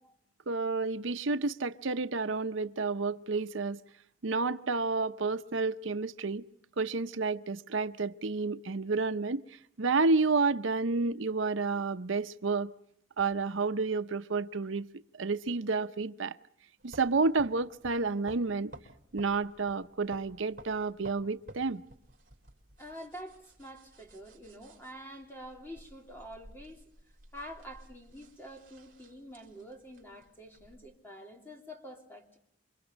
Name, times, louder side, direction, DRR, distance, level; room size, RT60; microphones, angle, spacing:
voice 1, 0.5-3.8 4.2-6.4 6.8-9.4 9.8-12.7 13.2-14.9 15.2-16.4 16.8-18.7 19.1-21.8, right 4 dB, 80° right, 0.8 m, -30 dB
sound 1, 16.8-30.8, right 1 dB, 45° right, 5.5 m, -55 dB
voice 2, 22.8-26.8 27.3-32.4, equal, 10° left, 3.2 m, -47 dB
28.5 x 24.5 x 5.2 m
head